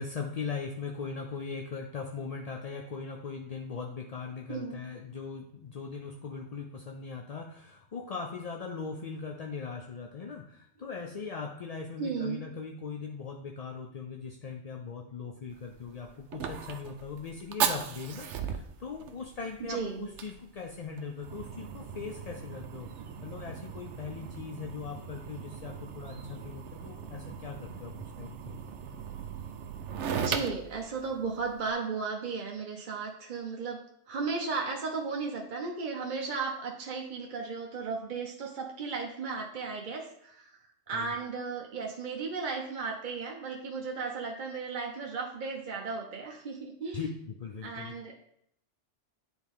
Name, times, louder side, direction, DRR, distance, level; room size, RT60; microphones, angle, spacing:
voice 1, 0.0-28.6 40.9-41.1 46.9-48.0, left 5 dB, 50° left, 2 dB, 0.4 m, -40 dB
voice 2, 4.5-4.8 12.0-12.4 19.7-20.1 30.1-33.8 34.1-40.6 40.9-47.0 47.6-48.2, right 4 dB, 45° right, 1 dB, 0.8 m, -35 dB
Fire, 15.5-31.7, right 7 dB, 70° right, 0.9 m, -38 dB
9.7 x 4.0 x 3.5 m, 0.71 s
omnidirectional pair, 1.3 m